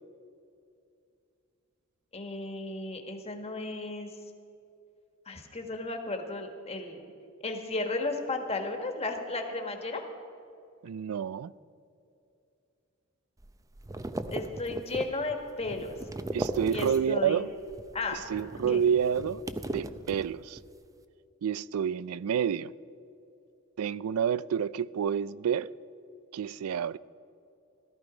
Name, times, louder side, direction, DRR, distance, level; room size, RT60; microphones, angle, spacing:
voice 1, 2.1-4.1 5.3-7.0 7.4-10.0 14.3-15.9 16.7-17.4 17.9-18.2 18.7-18.8, left 2 dB, 30° left, 1.5 m, -34 dB
voice 2, 10.8-11.5 16.3-17.5 18.1-19.4 19.7-20.6 21.4-22.7 23.8-25.7 26.3-27.0, right 8 dB, 80° right, 0.4 m, -29 dB
sound 1, 13.4-17.3 17.6-20.7, right 2 dB, 15° right, 0.5 m, -38 dB
17.5 x 13.0 x 5.0 m
head